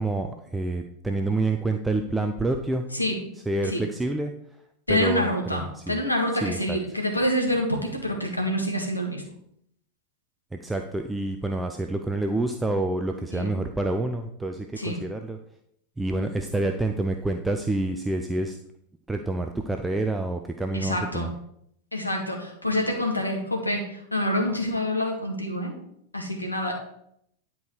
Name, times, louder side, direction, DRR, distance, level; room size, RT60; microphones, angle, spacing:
voice 1, 0.0-2.8 3.5-4.3 4.9-6.0 6.4-6.8 10.5-15.4 16.0-18.6 19.1-21.3, right 2 dB, 5° right, 5 dB, 0.6 m, -28 dB
voice 2, 4.9-9.2 13.3-13.5 14.8-15.0 20.7-21.3 21.9-25.8 26.1-26.7, left 1 dB, 85° left, 2 dB, 1.9 m, -27 dB
10.5 x 4.7 x 4.6 m, 0.73 s
figure-of-eight pair, 90°, 0 cm